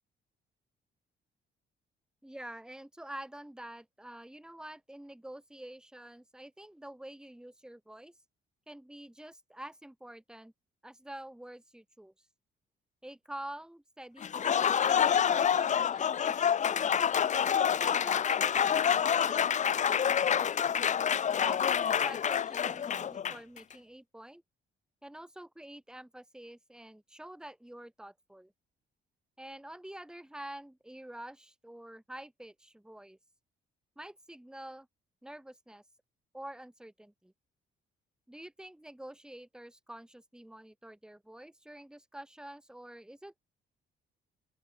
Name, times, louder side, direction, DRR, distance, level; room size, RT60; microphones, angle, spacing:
voice 1, 2.2-8.1 8.7-10.5 10.8-12.1 13.0-16.9 17.4-20.3 21.4-24.4 25.0-28.5 29.4-33.2 34.0-34.9 35.2-35.8 36.3-37.3 38.3-43.4, right 1 dB, 5° right, 1.9 m, -48 dB
Applause, 14.2-23.6, left 8 dB, 35° left, 0.5 m, -27 dB
open air
cardioid pair, 90°, 20 cm